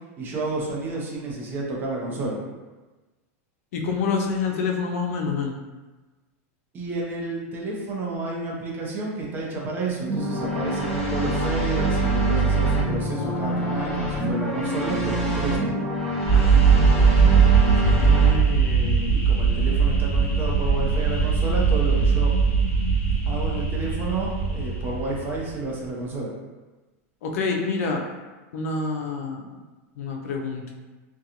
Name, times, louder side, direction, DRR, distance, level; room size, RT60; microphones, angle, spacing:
voice 1, 0.2-2.4 6.7-15.8 19.3-22.3 23.3-26.3, right 2 dB, 25° right, -3 dB, 0.6 m, -30 dB
voice 2, 3.7-5.6 16.3-17.5 17.9-19.2 27.2-28.0 28.5-29.6 30.0-30.7, left 4 dB, 75° left, 1 dB, 0.5 m, -28 dB
sound 1, 10.1-18.3, right 2 dB, 10° left, 0.7 m, -24 dB
sound 2, 16.3-25.5, right 5 dB, 35° left, 1.0 m, -20 dB
2.5 x 2.2 x 2.8 m, 1.2 s
supercardioid pair, 135°, 8 cm